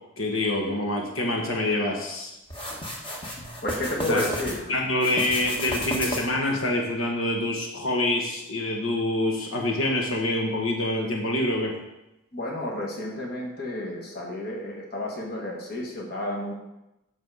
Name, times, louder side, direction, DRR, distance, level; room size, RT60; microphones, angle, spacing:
voice 1, 0.2-2.3 4.1-4.2 4.7-11.7, left 1 dB, 75° left, 1 dB, 1.2 m, -26 dB
sound 1, 2.5-4.6 5.0-6.5, left 1 dB, 25° left, 1.3 m, -33 dB
voice 2, 3.6-4.7 12.3-16.5, left 1 dB, 45° left, -2 dB, 1.5 m, -31 dB
7.5 x 6.1 x 4.8 m, 0.93 s
head